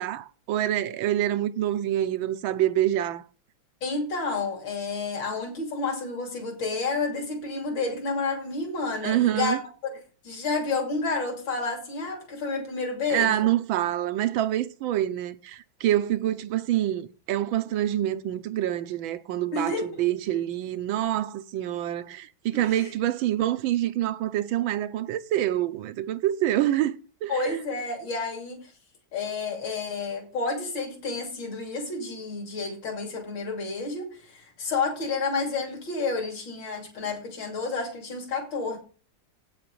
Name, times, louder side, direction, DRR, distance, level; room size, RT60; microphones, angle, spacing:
voice 1, 0.0-3.2 9.0-9.6 13.1-27.6, right 12 dB, 85° right, 1.5 m, -26 dB
voice 2, 3.8-10.0 10.2-13.5 19.5-20.0 22.5-22.9 27.3-28.7 29.1-38.8, left 3 dB, 70° left, 3.5 m, -30 dB
8.8 x 7.4 x 6.8 m
omnidirectional pair, 2.1 m